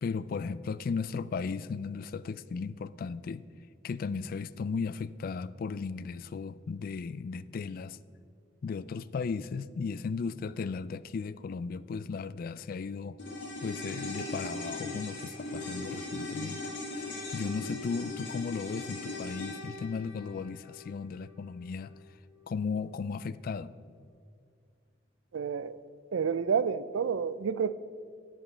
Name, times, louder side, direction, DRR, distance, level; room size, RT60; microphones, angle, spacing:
voice 1, 0.0-3.5 3.8-8.0 8.6-13.2 13.6-17.1 17.3-21.9 22.5-23.7, left 5 dB, 50° left, 17 dB, 0.3 m, -36 dB
sound 1, 13.2-21.7 22.0-22.1, left 2 dB, 75° left, 2.2 m, -39 dB
voice 2, 25.3-25.8 26.1-27.8, right 6 dB, 85° right, 16 dB, 0.4 m, -29 dB
10.5 x 10.5 x 4.4 m, 2.3 s
head